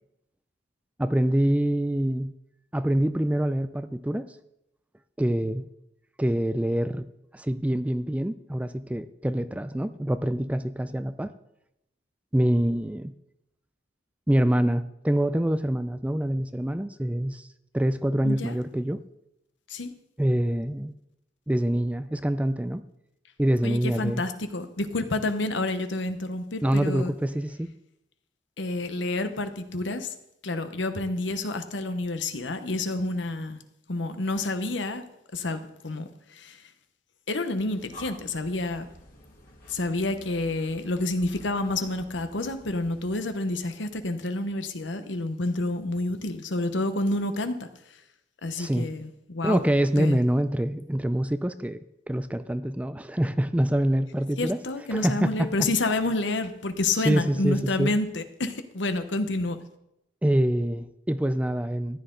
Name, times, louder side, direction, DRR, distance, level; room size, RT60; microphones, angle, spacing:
voice 1, 1.0-2.3 2.7-4.3 5.2-5.6 6.2-7.1 7.3-11.3 12.3-13.1 14.3-17.5 17.7-19.0 20.2-20.9 21.5-22.8 23.4-24.2 26.6-27.7 48.6-48.9 49.4-51.8 52.1-54.6 54.9-55.5 57.0-58.0 60.2-62.0, right 1 dB, 5° right, 12 dB, 0.4 m, -25 dB
voice 2, 18.2-18.6 19.7-19.9 23.6-27.1 28.6-30.1 30.4-33.6 33.9-35.0 35.3-36.1 36.3-36.6 37.3-38.9 39.7-47.7 48.4-49.6 50.0-50.2 54.4-59.6, left 2 dB, 75° left, 9 dB, 1.0 m, -29 dB
Breathing, 37.6-43.3, equal, 50° left, 2.4 m, -50 dB
14.0 x 10.0 x 3.9 m, 0.82 s
head